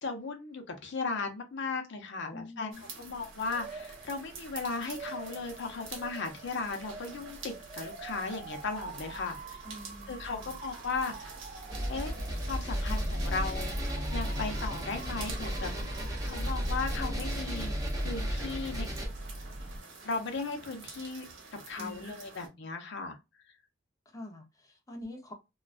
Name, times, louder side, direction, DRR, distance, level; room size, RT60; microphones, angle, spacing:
voice 1, 0.0-9.6 10.1-11.4 11.9-12.1 12.4-15.7 16.2-18.9 20.0-21.2 21.7-23.2, left 4 dB, 65° left, 0.7 m, -36 dB
voice 2, 2.3-3.0 9.6-10.6 15.0-15.1 21.7-22.3 24.1-25.3, left 1 dB, 15° left, 0.6 m, -46 dB
sound 1, 2.7-22.5, right 4 dB, 70° right, 0.9 m, -49 dB
Motor vehicle (road) / Siren, 3.0-19.8, right 2 dB, 35° right, 0.3 m, -45 dB
sound 2, 11.7-19.1, equal, 20° right, 0.9 m, -34 dB
2.3 x 2.3 x 2.3 m
head